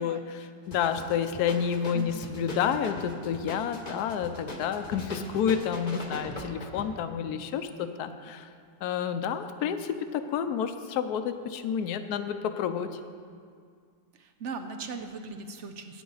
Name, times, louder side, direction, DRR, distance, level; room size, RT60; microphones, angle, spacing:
voice 1, 0.0-8.5 8.8-12.9, left 8 dB, 70° left, 9 dB, 1.1 m, -30 dB
sound 1, 0.7-7.0, left 1 dB, 30° left, 1.0 m, -41 dB
voice 2, 1.9-2.4 14.1-16.0, right 4 dB, 65° right, 7 dB, 0.7 m, -39 dB
14.5 x 9.2 x 3.9 m, 2.1 s
omnidirectional pair, 1.8 m